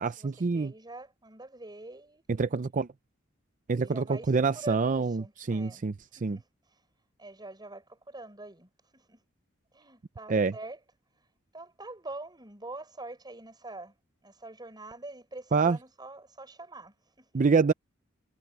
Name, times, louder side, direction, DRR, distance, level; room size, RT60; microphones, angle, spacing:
voice 1, 0.0-0.7 2.4-2.9 3.7-5.9 6.2-6.4 10.3-10.5 15.5-15.8 17.3-17.7, right 4 dB, 40° right, 0.5 m, -26 dB
voice 2, 0.5-2.2 3.8-5.8 6.2-6.8 7.2-9.2 9.7-10.8 11.5-13.9 14.2-17.4, right 2 dB, 20° right, 6.8 m, -45 dB
head